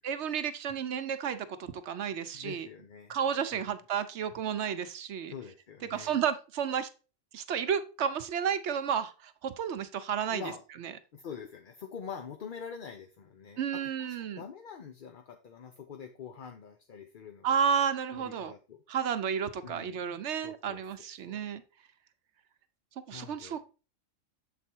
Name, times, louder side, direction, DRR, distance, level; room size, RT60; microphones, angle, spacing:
voice 1, 0.0-2.7 3.1-5.3 5.9-6.9 7.3-10.4 10.8-10.9 13.6-14.4 17.4-18.5 18.9-21.6 23.1-23.6, right 7 dB, 65° right, 0.9 m, -32 dB
voice 2, 2.3-3.2 3.5-3.7 5.3-6.2 10.3-10.6 11.1-17.6 18.1-18.8 19.6-20.8 21.3-21.4 23.1-23.6, left 6 dB, 50° left, 0.7 m, -45 dB
7.3 x 4.2 x 4.4 m
omnidirectional pair, 1.3 m